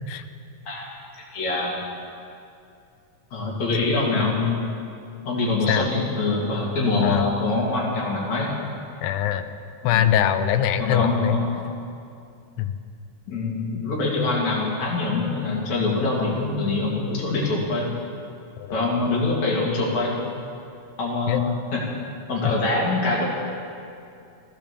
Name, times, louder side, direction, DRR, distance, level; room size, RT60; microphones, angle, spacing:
voice 1, 1.3-1.8 3.3-4.6 5.3-8.5 9.9-10.2 10.8-11.6 13.3-17.9 18.7-20.2 21.0-21.8 22.3-23.3, left 3 dB, 60° left, -3 dB, 3.9 m, -24 dB
voice 2, 7.0-7.3 9.0-9.5 9.8-11.4 12.6-12.7 18.6-18.7 21.3-21.6 22.4-22.5, left 10 dB, 80° left, 9 dB, 1.5 m, -23 dB
16.0 x 12.0 x 7.0 m, 2.5 s
omnidirectional pair, 3.7 m